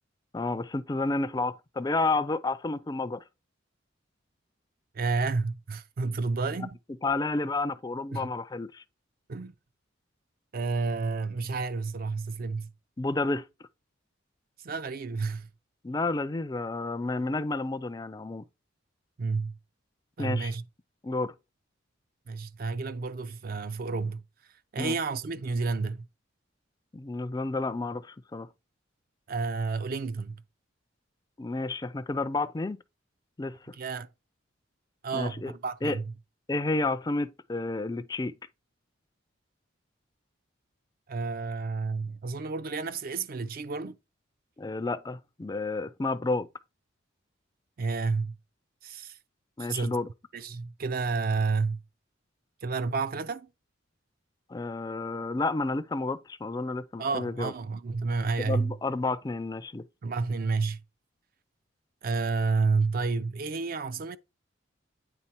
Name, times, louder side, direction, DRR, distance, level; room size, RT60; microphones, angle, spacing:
voice 1, 0.3-3.2 7.0-8.8 13.0-13.5 15.8-18.4 20.2-20.5 21.0-21.3 24.8-24.9 26.9-28.5 31.4-32.8 33.4-33.7 35.1-35.5 35.8-36.0 36.5-38.3 44.6-46.5 49.6-50.1 54.5-57.5 58.4-59.8, left 3 dB, 20° left, 0.4 m, -30 dB
voice 2, 4.9-6.7 8.1-8.3 9.3-9.5 10.5-12.7 14.6-15.5 19.2-19.6 20.2-20.6 22.3-24.2 24.7-26.1 29.3-30.4 33.8-34.1 35.0-36.1 41.1-44.0 47.8-48.4 48.8-49.2 49.6-50.0 50.3-51.8 52.6-53.5 57.0-58.7 60.0-60.8 62.0-64.2, right 4 dB, 50° right, 0.4 m, -30 dB
8.9 x 3.6 x 4.4 m
head